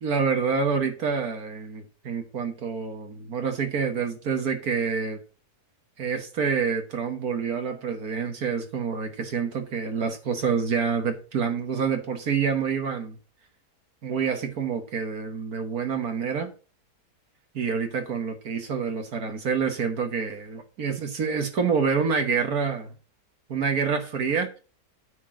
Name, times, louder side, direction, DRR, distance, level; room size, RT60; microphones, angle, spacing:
voice 1, 0.0-5.2 6.0-13.2 14.0-16.5 17.5-22.9 23.5-24.5, right 6 dB, 65° right, 1.8 m, -27 dB
9.3 x 4.5 x 7.4 m
omnidirectional pair, 1.7 m